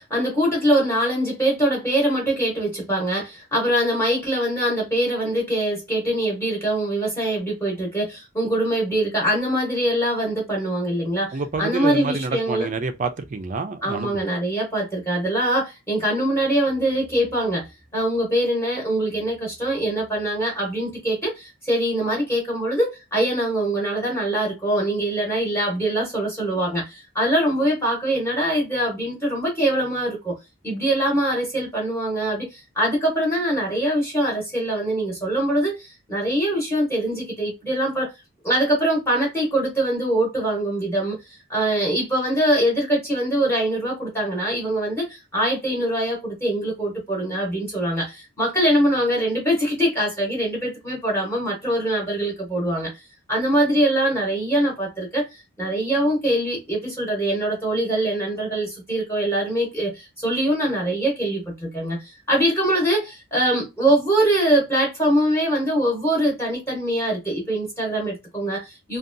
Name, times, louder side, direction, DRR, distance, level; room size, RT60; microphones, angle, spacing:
voice 1, 0.0-12.7 13.8-17.7 17.9-30.4 30.6-38.1 38.4-41.2 41.5-52.9 53.3-69.0, right 1 dB, 10° left, 0.8 m, -23 dB
voice 2, 11.3-14.2, right 4 dB, 35° right, 0.3 m, -28 dB
2.6 x 2.2 x 2.5 m
head